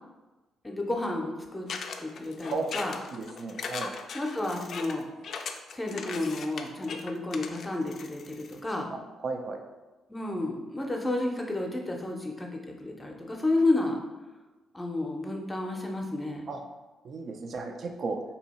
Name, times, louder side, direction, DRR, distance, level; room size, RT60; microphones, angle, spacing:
voice 1, 0.6-1.7 2.0-3.0 4.1-5.1 5.7-8.9 10.1-14.0 14.7-16.4, left 2 dB, 15° left, 1 dB, 0.6 m, -31 dB
sound 1, 1.7-8.6, left 5 dB, 60° left, 0.3 m, -39 dB
voice 2, 3.1-3.9 8.9-9.6 16.5-16.6 17.0-18.2, right 4 dB, 55° right, 4 dB, 0.4 m, -34 dB
2.7 x 2.7 x 4.1 m, 1.1 s
cardioid pair, 90°, 0 cm